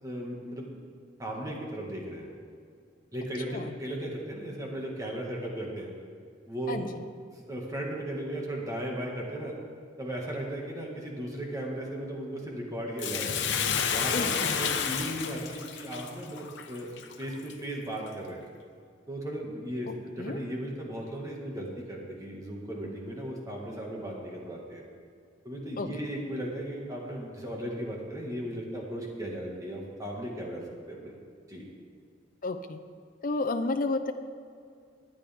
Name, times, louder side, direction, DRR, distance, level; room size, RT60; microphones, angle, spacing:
voice 1, 0.0-0.7 1.2-2.3 3.1-5.9 6.5-6.8 7.3-9.6 10.0-13.4 13.9-16.9 17.2-18.4 19.1-24.8 25.4-31.1 31.5-31.7, right 1 dB, 20° right, -2 dB, 1.9 m, -36 dB
voice 2, 6.7-7.0 14.1-14.6 19.9-20.4 25.8-25.9 32.4-32.8 33.2-34.1, left 2 dB, 50° left, 5 dB, 0.6 m, -32 dB
Bathtub (filling or washing), 13.0-17.5 18.1-18.2, left 7 dB, 75° left, 0.9 m, -30 dB
21.0 x 8.4 x 3.6 m, 2.3 s
head